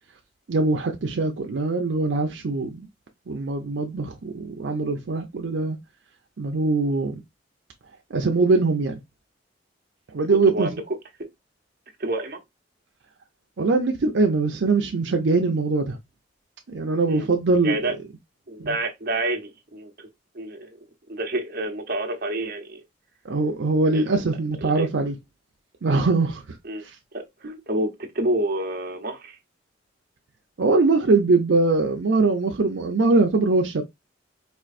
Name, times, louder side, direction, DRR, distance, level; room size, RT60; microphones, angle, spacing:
voice 1, 0.5-2.9 3.3-5.8 6.4-7.2 8.1-9.0 10.1-10.7 13.6-16.0 16.7-17.8 18.6-18.7 23.2-25.1 25.8-26.4 27.4-27.6 30.6-33.8, right 3 dB, 75° right, 0.5 m, -22 dB
voice 2, 10.3-11.3 12.0-12.4 17.1-17.3 17.6-18.0 18.5-20.1 20.3-22.8 23.9-24.2 24.6-24.9 26.6-26.8 27.1-29.4, right 1 dB, 50° right, 0.9 m, -29 dB
4.4 x 2.5 x 2.5 m
head